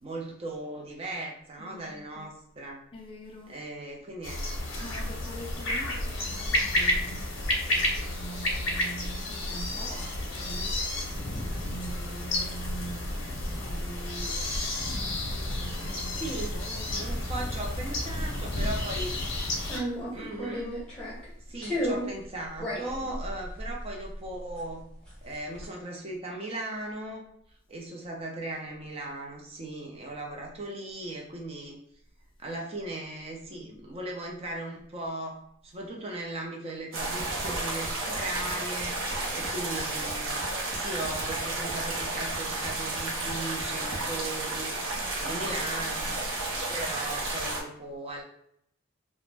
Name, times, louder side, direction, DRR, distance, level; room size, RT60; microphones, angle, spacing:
voice 1, 0.0-2.8 3.5-4.5 16.2-16.5 17.0-19.2 20.1-20.7 21.5-24.9 25.2-27.2 27.7-31.8 32.4-35.4 35.6-39.0 39.3-40.3 40.7-44.7 45.2-46.2 46.7-48.2, right 2 dB, 30° right, 0.5 m, -37 dB
voice 2, 1.6-2.3 2.9-3.6 4.8-17.2, right 2 dB, 25° left, 0.3 m, -44 dB
sound 1, 4.2-19.8, left 1 dB, 70° left, 0.7 m, -31 dB
sound 2, 18.9-19.1 19.6-21.3 21.6-22.2 22.5-24.8 25.1-25.7, equal, 5° left, 0.7 m, -34 dB
sound 3, 36.9-47.6, right 2 dB, 75° right, 0.7 m, -32 dB
2.4 x 2.1 x 3.2 m
head